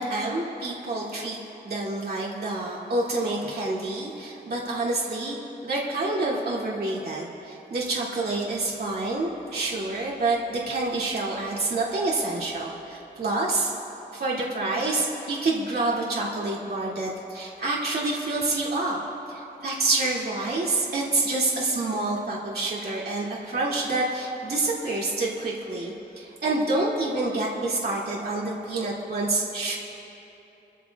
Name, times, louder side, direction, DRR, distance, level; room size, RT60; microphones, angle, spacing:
voice 1, 0.0-1.4 1.6-5.4 5.6-13.7 14.1-19.0 19.3-29.8, right 2 dB, 60° right, -5 dB, 2.4 m, -27 dB
27.5 x 13.0 x 2.4 m, 3.0 s
cardioid pair, 75°, 18 cm